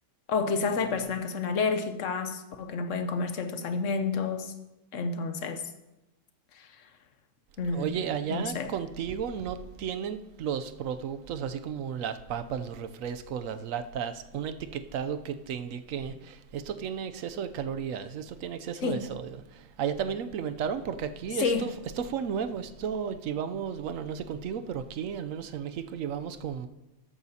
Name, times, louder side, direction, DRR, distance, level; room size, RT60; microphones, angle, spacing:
voice 1, 0.3-4.5 4.9-5.6 6.5-6.7 7.6-7.9 8.3-8.7 18.8-19.0 21.4-21.7, left 4 dB, 75° left, 1.2 m, -29 dB
voice 2, 7.7-21.7 22.0-26.7, right 7 dB, 90° right, 1.1 m, -34 dB
13.5 x 8.9 x 2.8 m
omnidirectional pair, 1.3 m